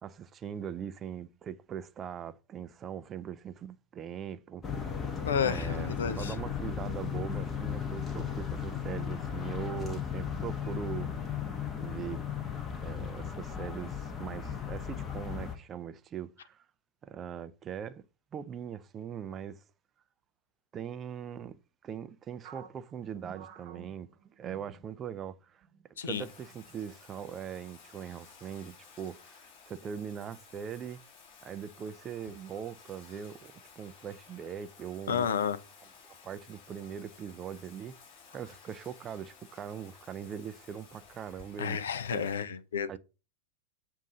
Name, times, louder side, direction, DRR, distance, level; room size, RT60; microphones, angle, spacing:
voice 1, 0.0-4.9 5.4-11.3 11.8-12.2 12.8-16.6 17.0-18.0 18.3-19.6 20.7-24.1 24.4-25.6 26.0-31.0 31.4-35.3 36.0-38.0 38.3-41.8 42.1-42.3 42.9-43.0, right 8 dB, 25° right, 0.4 m, -41 dB
sound 1, 4.6-15.6, left 7 dB, 20° left, 1.0 m, -36 dB
voice 2, 5.2-6.3 26.0-26.2 35.1-35.6 41.6-43.0, left 7 dB, 65° left, 0.5 m, -31 dB
sound 2, 22.4-25.3 25.6-25.8 26.5-26.9, right 7 dB, 45° right, 0.9 m, -51 dB
Bathtub (filling or washing), 26.1-42.3, left 5 dB, 40° left, 2.6 m, -56 dB
7.1 x 2.6 x 5.4 m
figure-of-eight pair, 90°, 0 cm